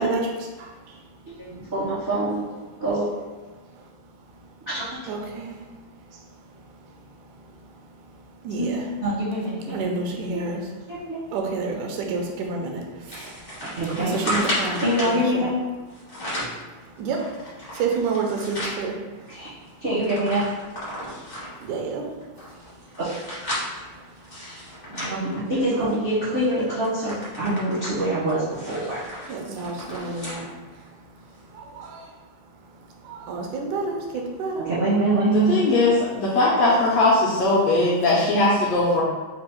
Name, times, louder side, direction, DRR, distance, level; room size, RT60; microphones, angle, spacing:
voice 1, 0.0-1.7 3.7-3.8 4.2-4.5 5.1-8.9 9.6-15.5 16.6-19.8 20.9-22.9 23.5-24.9 25.7-25.8 27.3-27.5 29.2-34.7, right 4 dB, 85° right, 1 dB, 2.1 m, -32 dB
voice 2, 1.4-2.4 2.8-3.0 4.7-4.9 8.6-8.7 9.0-9.8 10.3-10.4 10.9-11.2 13.8-14.4 14.8-15.5 19.3-19.5 19.8-20.4 23.0-23.1 24.9-29.1 34.7-35.6, right 1 dB, 60° right, -13 dB, 0.7 m, -24 dB
sound 1, 13.1-15.2 15.9-16.6 17.1-18.8 19.3-19.4 19.6-21.6 22.2-25.9 26.3-26.5 26.8-30.4 30.8-30.9 31.8-31.9, equal, 40° left, 0.6 m, -33 dB
voice 3, 35.3-39.0, left 2 dB, 75° left, -5 dB, 1.5 m, -20 dB
5.1 x 2.0 x 4.4 m, 1.3 s
omnidirectional pair, 3.4 m